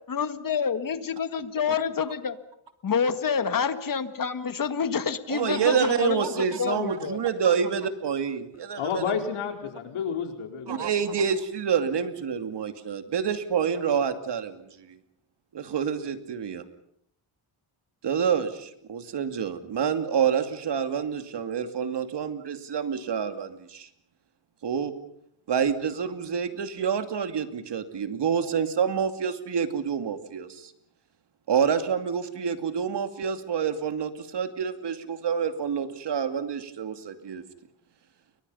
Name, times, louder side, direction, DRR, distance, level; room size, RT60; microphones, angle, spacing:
voice 1, 0.1-2.4 2.8-7.2, left 6 dB, 40° left, 11 dB, 1.9 m, -28 dB
voice 2, 5.3-9.1 10.7-14.6 15.5-16.6 18.0-23.9 24.6-24.9 25.5-30.7 31.5-37.4, right 7 dB, 55° right, 8 dB, 2.7 m, -27 dB
voice 3, 8.8-10.9, left 7 dB, 85° left, 4 dB, 4.7 m, -30 dB
29.5 x 24.0 x 5.7 m, 0.71 s
cardioid pair, 105°, 49 cm